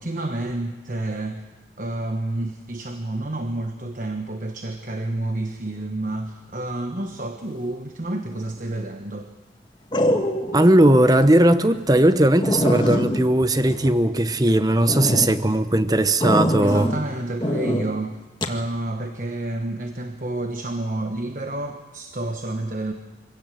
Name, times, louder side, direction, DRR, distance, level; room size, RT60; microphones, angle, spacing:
voice 1, 0.0-1.4 1.8-9.3 16.6-18.2 18.4-22.9, right 2 dB, 45° right, 5 dB, 1.2 m, -29 dB
sound 1, 8.3-8.7 9.9-10.7 11.1-11.2 11.7-11.8 12.1-12.2 12.4-14.4 14.9-15.3 16.2-17.0 17.4-17.8 18.4-18.6, equal, 25° left, 1.6 m, -24 dB
voice 2, 10.5-16.9, right 1 dB, 20° right, 11 dB, 0.9 m, -18 dB
24.5 x 17.0 x 7.7 m, 1.2 s
head